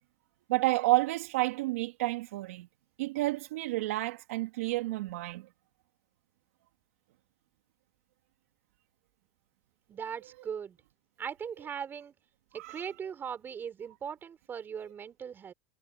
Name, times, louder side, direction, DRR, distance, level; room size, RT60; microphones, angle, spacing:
voice 1, 0.5-2.7 3.0-5.5 12.6-12.8, right 19 dB, 85° right, 2.9 m, -30 dB
voice 2, 9.9-10.8 11.2-12.1 12.5-15.5, right 7 dB, 30° right, 4.4 m, -39 dB
supercardioid pair, 120°, 7 cm